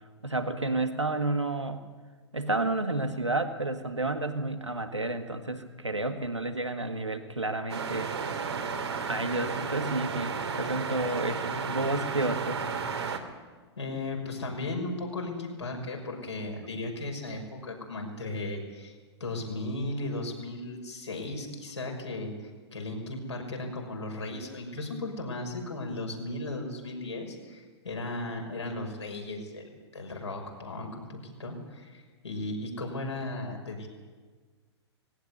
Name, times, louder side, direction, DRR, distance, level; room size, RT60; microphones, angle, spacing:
voice 1, 0.2-1.8 2.3-8.1 9.1-12.6, right 2 dB, 85° right, 8 dB, 1.8 m, -31 dB
sound 1, 7.7-13.2, right 5 dB, 70° right, 2.6 m, -33 dB
voice 2, 13.8-22.3 22.7-33.9, left 2 dB, 75° left, 1 dB, 6.0 m, -36 dB
20.0 x 17.0 x 9.6 m, 1.5 s
figure-of-eight pair, 105°, 15 cm